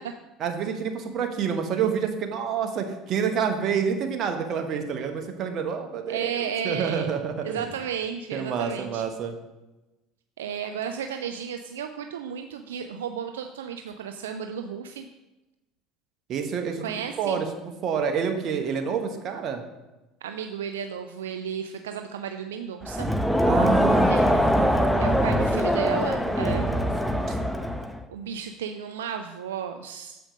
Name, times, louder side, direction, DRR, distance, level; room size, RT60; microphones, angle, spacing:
voice 1, 0.4-7.7 8.3-9.3 16.3-16.8 17.2-17.5 17.8-19.6 23.5-25.4 26.5-27.4, right 6 dB, 50° right, 5 dB, 1.2 m, -28 dB
voice 2, 6.1-7.1 7.4-9.0 10.4-15.1 16.8-17.4 20.2-23.1 24.0-24.2 25.0-26.7 28.1-30.2, right 8 dB, 85° right, 6 dB, 0.3 m, -33 dB
Crowd, 22.8-28.0, equal, ahead, 0.7 m, -23 dB
7.5 x 5.0 x 5.1 m, 1.0 s
hypercardioid pair, 75°, 0 cm